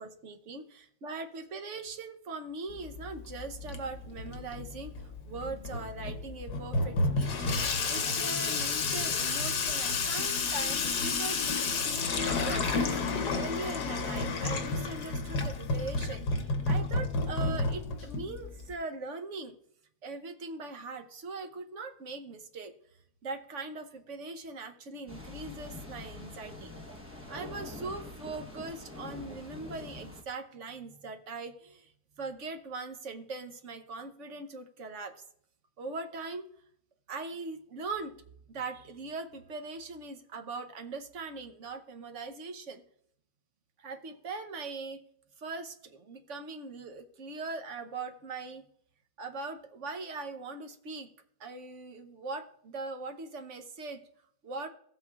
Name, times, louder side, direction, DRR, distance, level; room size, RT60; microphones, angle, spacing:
voice 1, 0.0-11.4 11.7-13.0 13.3-16.2 16.6-19.5 20.0-22.7 23.2-26.7 27.3-31.9 32.2-35.1 35.8-36.4 37.1-38.1 38.5-42.8 43.8-45.0 45.4-48.6 49.2-51.1 51.4-54.0 54.4-54.7, right 3 dB, 55° right, 6 dB, 1.0 m, -40 dB
Water tap faucet / Sink (filling or washing), 2.7-18.7, left 3 dB, 85° left, 1.6 m, -31 dB
sound 1, 25.1-30.2, left 2 dB, 10° right, 0.8 m, -45 dB
15.5 x 7.9 x 2.3 m, 0.67 s
omnidirectional pair, 1.7 m